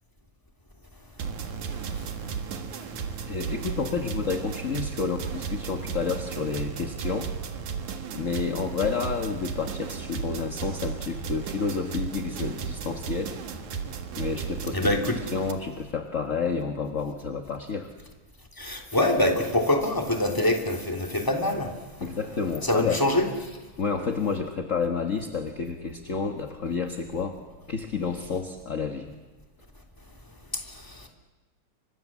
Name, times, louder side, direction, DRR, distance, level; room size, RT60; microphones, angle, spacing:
sound 1, 1.2-15.5, right 6 dB, 85° right, 3.3 m, -34 dB
voice 1, 3.3-7.3 8.1-13.3 14.2-17.9 22.0-23.0 23.8-27.4 27.7-29.1, left 5 dB, 40° left, 5 dB, 1.3 m, -30 dB
voice 2, 14.7-15.1 18.6-21.7 22.6-23.3, left 1 dB, 5° left, 3 dB, 2.7 m, -24 dB
30.0 x 25.5 x 7.4 m, 1.2 s
omnidirectional pair, 3.3 m